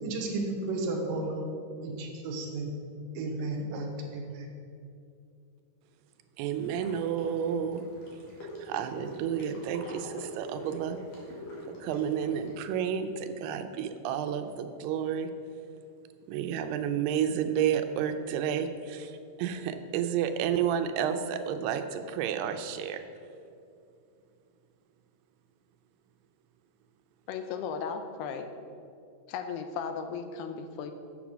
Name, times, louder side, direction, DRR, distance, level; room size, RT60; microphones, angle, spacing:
voice 1, 0.0-1.4 1.8-2.7 3.2-3.9 4.1-4.5, right 2 dB, 70° right, 2 dB, 2.4 m, -33 dB
voice 2, 6.4-7.9 8.4-11.0 11.8-15.3 16.3-23.0, right 8 dB, 85° right, 8 dB, 2.6 m, -31 dB
sound 1, 6.5-12.6, equal, 50° left, 2.6 m, -44 dB
voice 3, 27.3-28.5 29.3-30.9, left 6 dB, 90° left, 7 dB, 2.8 m, -36 dB
7.3 x 7.3 x 6.1 m, 2.5 s
omnidirectional pair, 4.6 m